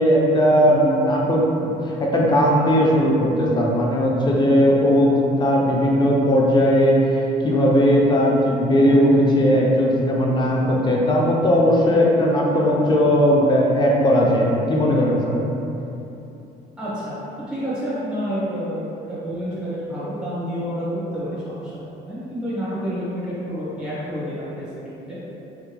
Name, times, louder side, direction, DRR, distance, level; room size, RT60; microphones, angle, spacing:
voice 1, 0.0-1.7 2.0-15.4, equal, 25° left, -3 dB, 0.5 m, -18 dB
voice 2, 16.8-17.2 17.5-24.7 25.1-25.2, equal, 5° right, -11 dB, 1.0 m, -29 dB
3.5 x 2.9 x 2.2 m, 3.0 s
cardioid pair, 110°, 17 cm